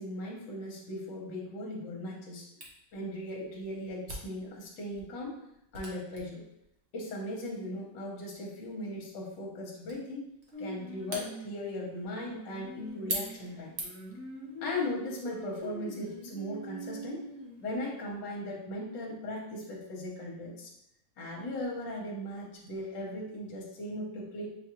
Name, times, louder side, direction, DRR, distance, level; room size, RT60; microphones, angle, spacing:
voice 1, 0.0-2.5 2.9-5.4 5.7-6.5 6.9-10.3 10.6-13.7 14.6-17.2 17.6-20.7 21.2-24.5, left 1 dB, 65° left, -2 dB, 1.4 m, -38 dB
Camera, 2.6-14.2, right 2 dB, 70° right, 0.6 m, -45 dB
Singing, 10.5-17.8, right 1 dB, 5° right, 0.4 m, -44 dB
6.1 x 2.4 x 2.8 m, 0.78 s
omnidirectional pair, 2.3 m